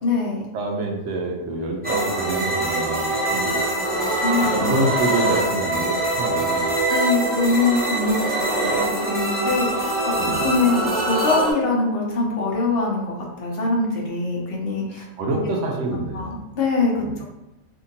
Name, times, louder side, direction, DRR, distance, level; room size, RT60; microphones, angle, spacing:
voice 1, 0.0-0.4 4.2-4.6 6.9-9.9 10.4-10.8 11.1-15.0 16.1-17.2, left 3 dB, 55° left, -2 dB, 0.8 m, -23 dB
voice 2, 0.5-3.6 3.9-6.7 10.2-10.5 15.2-16.4 17.0-17.1, right 2 dB, 70° right, 0 dB, 0.9 m, -27 dB
sound 1, 1.8-11.5, right 2 dB, 15° right, 0.4 m, -23 dB
2.8 x 2.6 x 2.6 m, 0.94 s
omnidirectional pair, 1.3 m